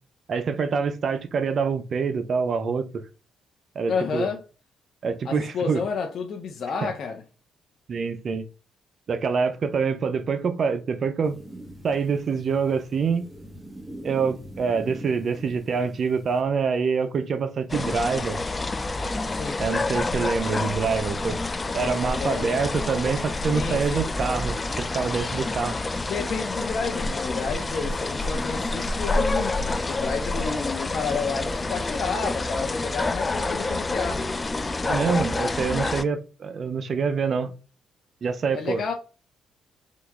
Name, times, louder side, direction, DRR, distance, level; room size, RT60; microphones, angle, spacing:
voice 1, 0.3-3.0 3.8-4.3 5.0-5.8 7.9-8.5 9.1-11.4 11.8-13.2 14.0-18.4 19.6-21.4 21.7-25.8 34.8-37.5 38.2-38.8, right 5 dB, 50° right, 0.5 m, -26 dB
voice 2, 3.9-4.4 5.2-7.2 19.2-19.6 22.1-22.6 23.5-24.0 26.1-34.3 38.5-38.9, left 5 dB, 60° left, 0.7 m, -30 dB
sound 1, 11.2-16.4, right 1 dB, 10° right, 1.0 m, -43 dB
sound 2, 17.7-36.0, left 2 dB, 25° left, 0.4 m, -28 dB
3.8 x 2.8 x 3.5 m
cardioid pair, 90°, 0 cm